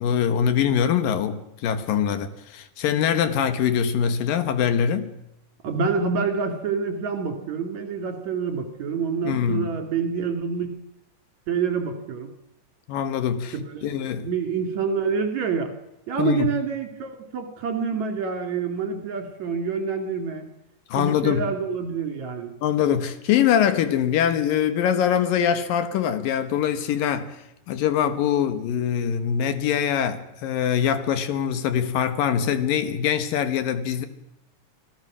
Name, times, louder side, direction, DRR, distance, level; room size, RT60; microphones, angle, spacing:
voice 1, 0.0-5.1 9.2-9.7 12.9-13.5 13.8-14.3 16.2-16.5 20.9-21.4 22.6-27.4 27.7-34.1, left 8 dB, 90° left, 3.2 m, -23 dB
voice 2, 5.6-10.7 11.5-12.3 13.7-15.7 16.1-20.5 21.0-22.5, right 5 dB, 60° right, 3.6 m, -27 dB
25.5 x 17.0 x 6.2 m
omnidirectional pair, 3.9 m